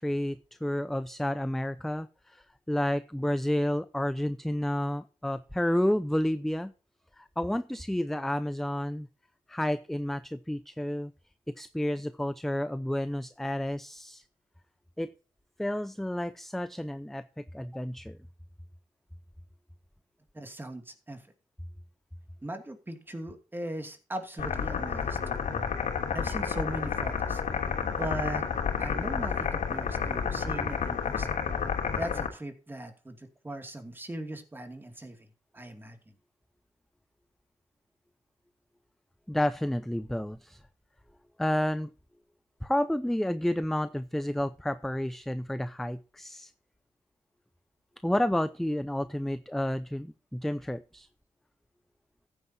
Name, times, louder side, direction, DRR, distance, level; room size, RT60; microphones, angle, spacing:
voice 1, 0.0-6.7 7.2-9.1 9.5-11.1 11.5-14.2 15.0-15.1 15.6-18.2 39.3-40.6 41.4-41.9 42.6-46.5 48.0-51.1, left 1 dB, ahead, 13 dB, 0.6 m, -30 dB
voice 2, 20.3-21.3 22.4-25.4 26.1-27.4 28.0-28.5 28.8-31.4 31.9-35.3 35.5-36.0, right 1 dB, 15° right, 6 dB, 2.5 m, -39 dB
sound 1, 24.4-32.3, left 6 dB, 85° left, 3.1 m, -30 dB
15.0 x 9.7 x 2.8 m, 0.34 s
wide cardioid pair, 115°, 12 cm